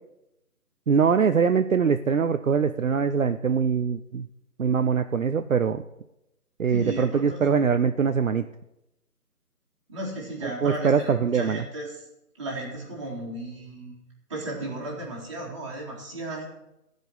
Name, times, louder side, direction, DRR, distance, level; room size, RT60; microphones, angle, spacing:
voice 1, 0.9-4.3 4.6-5.8 6.6-8.5 10.4-11.6, right 6 dB, 60° right, 9 dB, 0.6 m, -23 dB
voice 2, 6.7-7.5 9.9-12.0 12.4-13.9 14.3-16.4, right 1 dB, 20° right, -4 dB, 2.4 m, -35 dB
15.5 x 5.3 x 8.1 m, 0.88 s
figure-of-eight pair, 175°, 46 cm